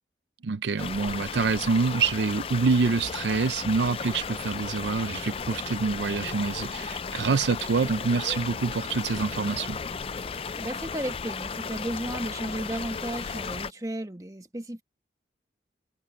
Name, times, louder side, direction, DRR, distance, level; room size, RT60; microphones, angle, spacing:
voice 1, 0.4-9.8, right 4 dB, 75° right, 0.5 m, -26 dB
sound 1, 0.8-13.7, left 5 dB, 30° left, 0.4 m, -35 dB
voice 2, 10.2-14.8, right 1 dB, 20° right, 1.3 m, -34 dB
head